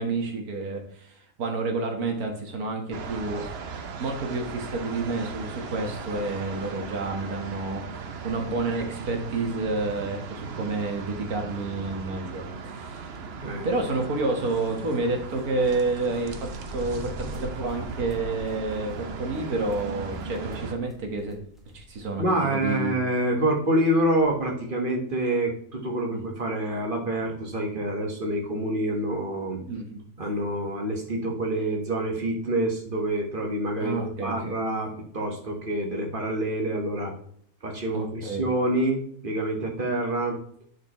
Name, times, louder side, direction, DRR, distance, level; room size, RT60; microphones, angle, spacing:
voice 1, 0.0-13.2 13.6-21.4 21.7-22.2 22.5-23.0 26.1-26.2 29.7-30.0 33.8-34.6 37.9-38.4, right 3 dB, 90° right, 3 dB, 1.9 m, -29 dB
sound 1, 2.9-20.7, right 5 dB, 55° right, 0.9 m, -38 dB
sound 2, 15.4-22.1 22.4-22.5 23.6-23.7 24.0-24.3, equal, ahead, 1.1 m, -43 dB
voice 2, 22.2-29.6 30.2-37.1 37.6-40.4, right 1 dB, 35° right, 2 dB, 1.5 m, -27 dB
10.5 x 5.1 x 3.1 m, 0.63 s
omnidirectional pair, 1.5 m